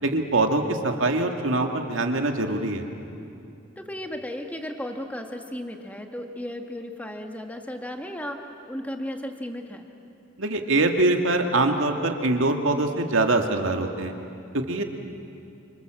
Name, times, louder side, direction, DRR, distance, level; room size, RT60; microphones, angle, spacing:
voice 1, 0.0-2.8 10.4-14.1 14.5-14.8, right 2 dB, 75° right, 4 dB, 2.2 m, -23 dB
voice 2, 3.8-9.9, left 1 dB, 5° left, 4 dB, 1.7 m, -35 dB
29.0 x 26.0 x 7.7 m, 2.7 s
head